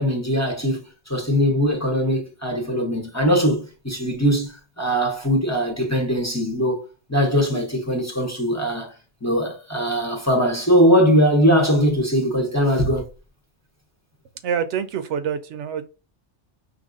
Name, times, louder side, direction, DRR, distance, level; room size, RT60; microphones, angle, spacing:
voice 1, 0.0-6.8 7.1-8.9 9.2-13.1, equal, 15° left, 0.8 m, -21 dB
voice 2, 14.4-15.8, right 7 dB, 90° right, 0.9 m, -26 dB
5.2 x 2.9 x 2.5 m
omnidirectional pair, 1.2 m